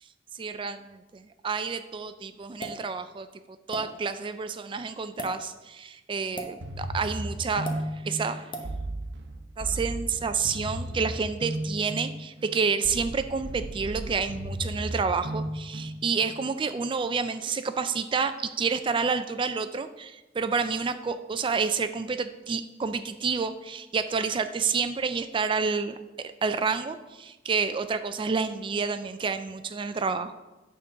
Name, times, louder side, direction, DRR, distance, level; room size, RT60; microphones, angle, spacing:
voice 1, 0.4-0.8 1.4-3.3 3.7-7.7 8.0-8.5 9.6-26.0 26.4-30.4, right 5 dB, 30° right, 10 dB, 0.3 m, -29 dB
sound 1, 2.6-2.8 3.7-3.8 5.1-5.3 6.4-6.5 7.6-7.8 8.5-8.7, equal, 30° left, 0.9 m, -35 dB
Techno Synth Delays, 6.6-16.4, right 1 dB, 80° right, 0.7 m, -35 dB
9.3 x 3.8 x 5.7 m, 1.1 s
head